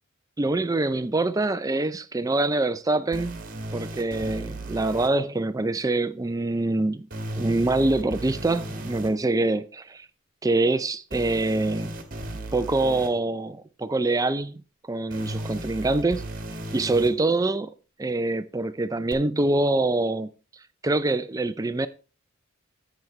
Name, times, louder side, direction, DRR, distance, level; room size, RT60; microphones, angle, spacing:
voice 1, 0.4-3.4 3.7-7.1 7.4-10.1 10.4-11.9 12.5-14.6 14.9-16.2 16.7-17.7 18.0-20.3 20.8-21.9, right 2 dB, 15° right, 0.4 m, -25 dB
sound 1, 3.1-5.1 7.1-9.1 11.1-13.1 15.1-17.1 19.1-19.2, right 1 dB, 40° right, 1.4 m, -35 dB
10.5 x 7.9 x 3.2 m
head